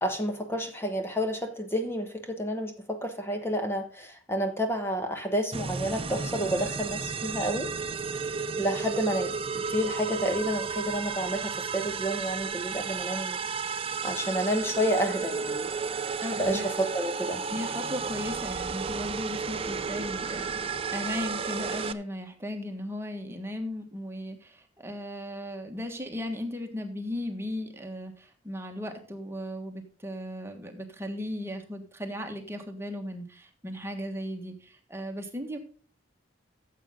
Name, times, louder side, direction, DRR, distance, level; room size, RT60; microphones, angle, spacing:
voice 1, 0.0-7.7 8.6-13.4 13.7-15.7 16.4-17.4, equal, 10° left, 6 dB, 1.1 m, -30 dB
sound 1, 5.5-21.9, right 5 dB, 30° right, 0.6 m, -33 dB
voice 2, 16.2-16.6 17.5-35.6, left 1 dB, 15° right, 4 dB, 1.5 m, -36 dB
14.0 x 7.6 x 3.8 m, 0.43 s
head